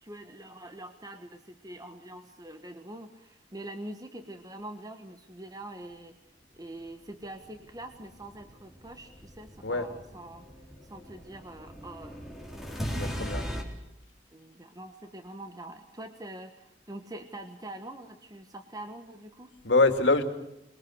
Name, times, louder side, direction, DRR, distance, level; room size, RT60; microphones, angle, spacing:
voice 1, 0.0-6.1 6.5-10.4 10.8-12.2 14.3-19.5, right 1 dB, 20° right, 7 dB, 1.4 m, -44 dB
sound 1, 7.2-13.6, equal, ahead, 4.0 m, -39 dB
voice 2, 12.9-13.5 19.6-20.2, left 3 dB, 90° left, 8 dB, 2.5 m, -24 dB
25.0 x 22.0 x 6.5 m, 0.88 s
head